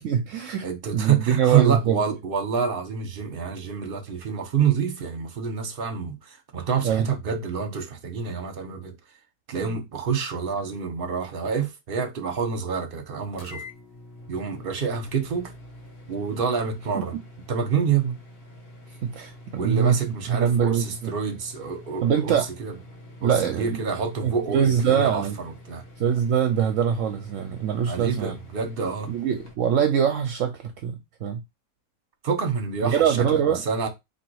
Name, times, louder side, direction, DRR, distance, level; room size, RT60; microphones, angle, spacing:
voice 1, 0.0-0.7 0.9-2.0 6.8-7.1 16.9-17.1 19.0-20.0 20.3-20.8 22.0-22.5 23.2-23.8 24.2-25.4 26.0-28.3 29.1-31.4 32.8-33.6, right 8 dB, 70° right, 0.9 m, -23 dB
voice 2, 0.6-9.0 9.5-13.6 14.3-15.5 16.1-17.2 17.5-18.1 19.5-22.7 23.2-25.8 27.9-29.1 32.2-33.9, right 6 dB, 45° right, 1.0 m, -27 dB
sound 1, 13.3-29.5, left 1 dB, 45° left, 1.5 m, -46 dB
3.8 x 2.8 x 4.6 m
omnidirectional pair, 1.5 m